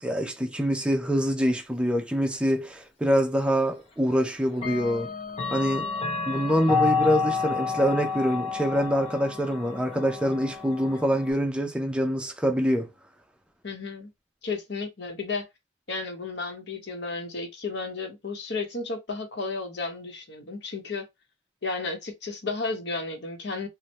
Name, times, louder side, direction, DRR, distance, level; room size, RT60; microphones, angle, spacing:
voice 1, 0.0-5.1 5.5-5.9 6.3-12.9, equal, 5° right, 0.4 m, -25 dB
Clock, 3.2-3.3 4.5-11.3, left 4 dB, 30° left, 0.7 m, -30 dB
voice 2, 13.6-14.1 14.4-15.4 15.9-21.1 21.6-23.7, left 3 dB, 60° left, 0.9 m, -33 dB
3.2 x 2.1 x 2.8 m
head